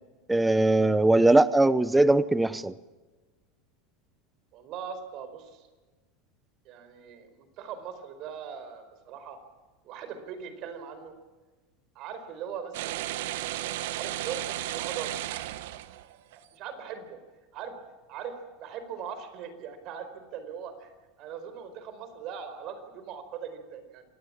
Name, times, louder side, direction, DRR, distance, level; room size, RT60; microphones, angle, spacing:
voice 1, 0.3-2.7, right 2 dB, 5° right, 17 dB, 0.8 m, -21 dB
voice 2, 4.5-5.7 6.6-9.4 9.8-11.1 11.9-13.2 13.9-15.1 16.5-17.2 17.5-17.8 18.1-18.3 18.6-20.9 21.2-24.0, right 7 dB, 45° right, 10 dB, 4.5 m, -40 dB
sound 1, 12.7-16.4, right 14 dB, 75° right, 1.4 m, -34 dB
27.0 x 19.0 x 7.4 m, 1.3 s
supercardioid pair, 150°, 0 cm